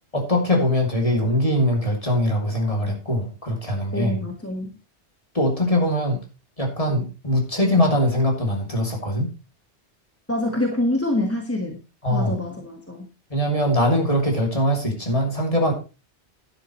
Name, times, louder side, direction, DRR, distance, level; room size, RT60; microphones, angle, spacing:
voice 1, 0.1-4.1 5.3-6.2 6.6-9.3 12.0-12.3 13.3-15.7, left 1 dB, 30° left, 1 dB, 3.0 m, -22 dB
voice 2, 3.9-4.7 10.3-11.8 12.1-13.1, left 1 dB, 10° left, 2 dB, 1.6 m, -26 dB
11.5 x 10.5 x 3.1 m, 0.30 s
omnidirectional pair, 1.1 m